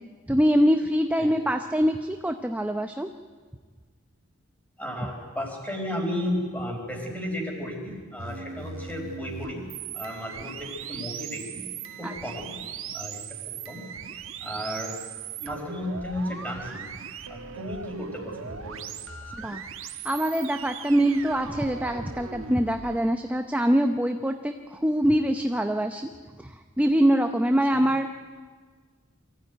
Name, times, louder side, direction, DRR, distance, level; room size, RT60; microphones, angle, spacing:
voice 1, 0.3-3.1 12.0-12.1 19.3-19.6 20.0-26.1 26.4-28.1, equal, 5° right, 6 dB, 0.7 m, -24 dB
voice 2, 4.8-9.6 9.9-11.6 12.0-12.5 12.9-13.2 13.7-13.8 14.1-14.9 15.4-16.9 17.3-18.8 19.4-19.5 27.7-27.8, left 1 dB, 10° left, 1 dB, 4.7 m, -34 dB
sound 1, 8.2-23.0, right 6 dB, 75° right, 1.3 m, -39 dB
24.0 x 15.0 x 9.2 m, 1.6 s
head